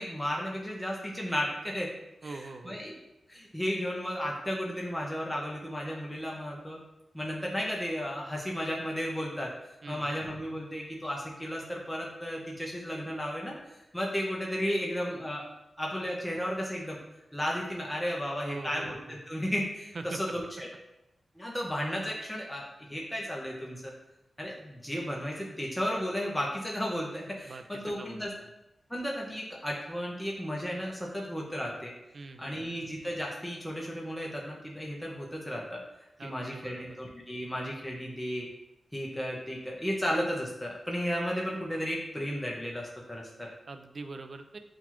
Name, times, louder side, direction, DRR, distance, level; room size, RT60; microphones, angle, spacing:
voice 1, 0.0-1.9 2.2-3.0 3.3-6.8 7.1-9.5 9.9-15.4 15.8-17.0 17.3-20.7 21.4-23.9 24.4-28.3 28.9-31.9 32.4-35.8 36.2-38.5 38.9-43.5, equal, 5° left, -3 dB, 0.6 m, -34 dB
voice 2, 2.2-2.8 9.8-10.2 18.4-19.2 19.9-20.2 27.4-28.3 32.1-32.7 36.2-37.0 43.7-44.6, right 3 dB, 50° right, 7 dB, 0.3 m, -43 dB
5.8 x 2.4 x 2.9 m, 0.91 s
wide cardioid pair, 120°, 0 cm